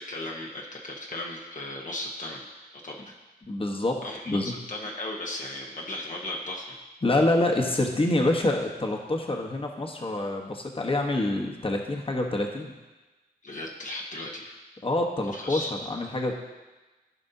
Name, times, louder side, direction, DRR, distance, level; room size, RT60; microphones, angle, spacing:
voice 1, 0.0-2.5 2.8-3.2 4.0-6.8 13.4-14.5 15.3-15.7, left 1 dB, 50° left, -1 dB, 1.0 m, -36 dB
voice 2, 3.5-4.0 4.3-4.5 7.0-12.7 14.8-16.3, left 2 dB, 35° left, 1 dB, 1.1 m, -26 dB
15.0 x 5.3 x 2.7 m, 1.2 s
wide cardioid pair, 70°, 17 cm